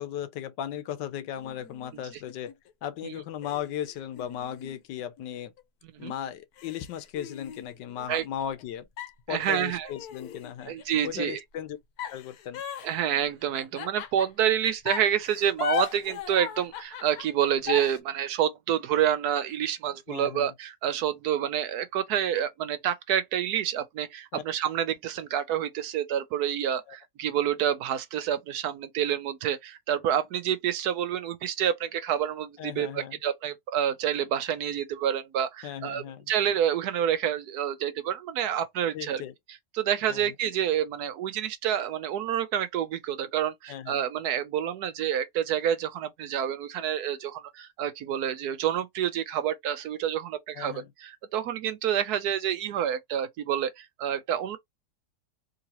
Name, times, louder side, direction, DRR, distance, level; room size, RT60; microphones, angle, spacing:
voice 1, 0.0-2.5 2.8-5.5 6.0-8.9 9.3-10.8 11.0-11.8 12.1-12.6 20.1-20.5 24.3-24.4 26.9-27.0 32.6-33.2 35.6-36.3 38.9-39.3 40.1-40.3 43.7-44.0 50.6-50.9, left 10 dB, 80° left, 1.3 m, -36 dB
sound 1, 1.4-2.7 3.4-5.6 6.1-6.2 6.6-8.6 9.0-11.0 12.0-14.5 14.8-18.0, left 9 dB, 65° left, 1.1 m, -38 dB
voice 2, 9.3-9.9 10.7-11.4 12.8-39.2 39.7-54.6, right 10 dB, 70° right, 1.0 m, -28 dB
3.8 x 2.8 x 2.8 m
omnidirectional pair, 1.9 m